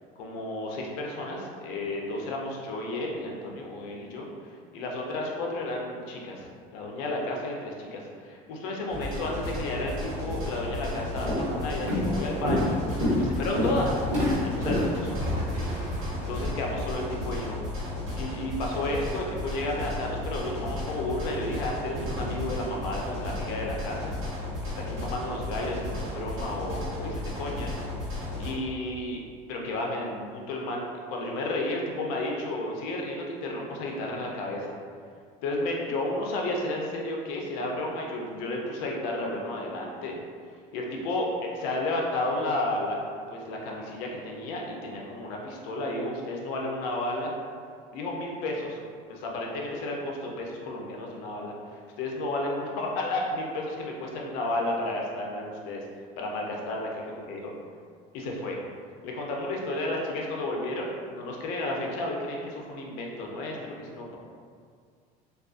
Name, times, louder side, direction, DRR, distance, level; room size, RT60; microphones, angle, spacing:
voice 1, 0.2-4.3 4.7-6.5 6.7-13.9 14.4-15.2 16.1-17.6 18.1-24.1 24.6-27.7 28.4-29.2 29.5-34.7 35.4-40.2 40.7-43.0 43.3-47.3 47.9-48.8 49.1-55.8 56.2-57.0 57.3-57.5 58.1-58.6 59.0-64.2, left 1 dB, 75° left, -1 dB, 0.5 m, -32 dB
sound 1, 8.9-28.5, left 1 dB, 70° right, 0.9 m, -34 dB
Walk footsteps, 10.7-10.9 11.3-11.6 11.9-16.5, left 1 dB, 30° right, 1.3 m, -27 dB
2.4 x 2.3 x 2.4 m, 2.1 s
cardioid pair, 170°, 17 cm